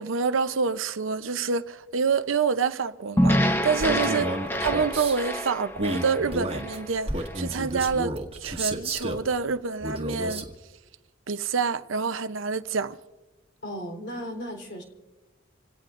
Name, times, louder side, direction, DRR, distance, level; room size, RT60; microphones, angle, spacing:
voice 1, 0.0-4.3 4.6-8.1 8.4-10.4 11.3-13.0, right 5 dB, 85° right, 0.7 m, -27 dB
sound 1, 3.2-7.5, equal, 10° left, 0.8 m, -27 dB
voice 2, 3.8-4.1 13.6-14.8, equal, 55° left, 3.8 m, -36 dB
Male speech man speaking, 3.8-5.2 5.7-9.3 9.8-10.5, right 1 dB, 30° right, 1.8 m, -32 dB
28.0 x 17.5 x 2.6 m
head